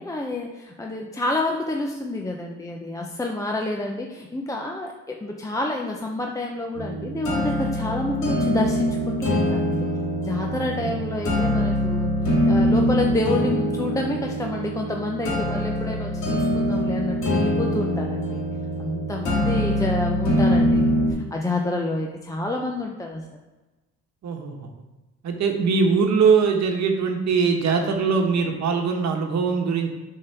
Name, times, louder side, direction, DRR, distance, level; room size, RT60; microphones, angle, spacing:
voice 1, 0.0-10.0 10.2-18.4 18.8-21.0 21.3-23.3, left 2 dB, 10° left, 1 dB, 0.7 m, -28 dB
sound 1, 6.8-21.1, equal, 75° left, 1.9 m, -23 dB
voice 2, 24.2-24.7 25.2-29.9, right 5 dB, 65° right, 3 dB, 1.2 m, -21 dB
6.5 x 3.8 x 5.7 m, 1.1 s
cardioid pair, 90°, 30 cm